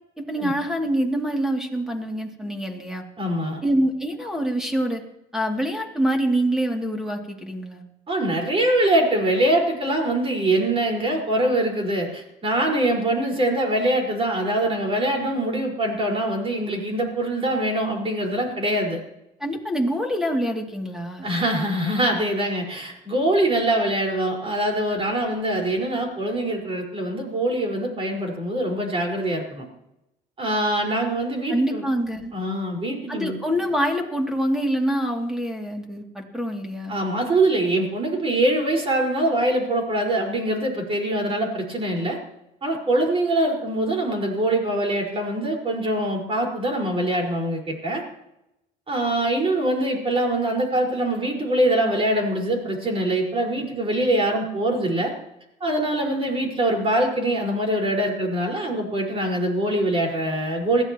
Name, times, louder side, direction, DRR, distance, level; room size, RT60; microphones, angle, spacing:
voice 1, 0.2-3.0 3.6-5.0 5.3-7.8 19.4-21.3 31.5-32.3 33.1-37.0, right 1 dB, 5° right, 2 dB, 2.8 m, -25 dB
voice 2, 3.2-3.6 8.1-19.0 21.2-29.7 30.4-31.8 32.3-33.4 36.9-42.2 42.6-48.0 48.9-55.1 55.6-60.8, right 1 dB, 35° right, 0 dB, 5.1 m, -23 dB
21.5 x 15.0 x 3.1 m, 0.88 s
cardioid pair, 110°, 17 cm